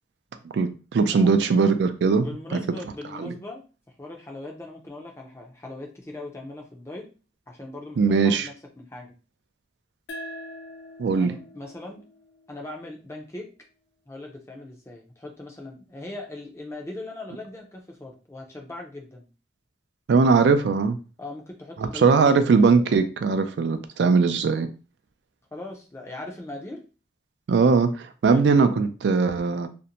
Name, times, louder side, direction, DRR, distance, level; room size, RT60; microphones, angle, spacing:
voice 1, 0.5-2.3 2.5-2.6 3.2-3.3 8.0-8.5 11.0-11.3 20.1-21.0 21.8-24.7 27.5-29.7, right 4 dB, 80° right, 9 dB, 0.3 m, -20 dB
voice 2, 1.1-1.5 2.2-7.1 7.5-9.1 11.1-12.0 12.5-13.5 14.1-19.3 21.2-22.4 25.5-26.8 28.3-28.5, left 2 dB, 15° left, 1 dB, 0.4 m, -39 dB
sound 1, 10.1-13.3, left 1 dB, 80° left, 0.4 m, -43 dB
2.5 x 2.1 x 2.8 m, 0.34 s
head